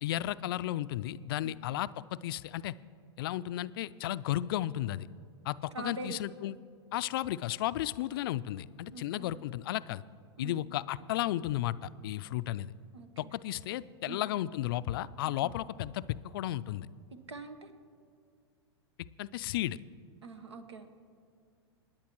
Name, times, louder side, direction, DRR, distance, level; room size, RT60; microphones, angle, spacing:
voice 1, 0.0-2.8 3.2-5.1 5.4-6.6 6.9-10.0 10.4-12.7 13.2-16.0 16.3-16.9 19.2-19.8, left 14 dB, 55° left, 17 dB, 0.4 m, -34 dB
voice 2, 5.7-6.2 8.9-9.3 10.4-10.5 12.9-13.3 14.1-14.2 15.4-15.5 17.1-17.7 20.2-20.9, right 3 dB, 85° right, 9 dB, 1.1 m, -43 dB
27.0 x 10.5 x 3.0 m, 2.2 s
hypercardioid pair, 100°, 14 cm